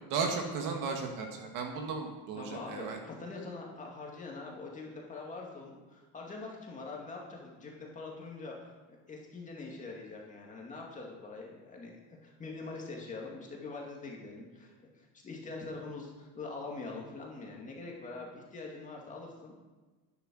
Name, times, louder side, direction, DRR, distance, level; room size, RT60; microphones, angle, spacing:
voice 1, 0.1-3.0, right 5 dB, 50° right, 3 dB, 2.0 m, -35 dB
voice 2, 2.4-8.7 9.1-19.6, left 3 dB, 20° left, -1 dB, 2.3 m, -44 dB
11.0 x 10.5 x 6.3 m, 1.2 s
cardioid pair, 180°, 42 cm